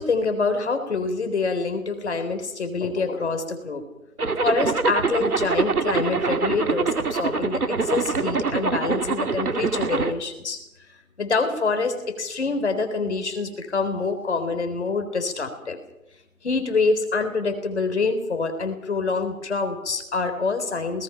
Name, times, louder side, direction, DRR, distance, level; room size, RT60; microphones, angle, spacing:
voice 1, 0.0-3.8 4.4-10.6 11.2-15.8 16.4-21.0, left 4 dB, 50° left, 8 dB, 3.9 m, -26 dB
Zipper (clothing), 4.2-10.1, right 4 dB, 90° right, 2.2 m, -24 dB
27.0 x 19.0 x 5.8 m, 0.91 s
hypercardioid pair, 170°, 43 cm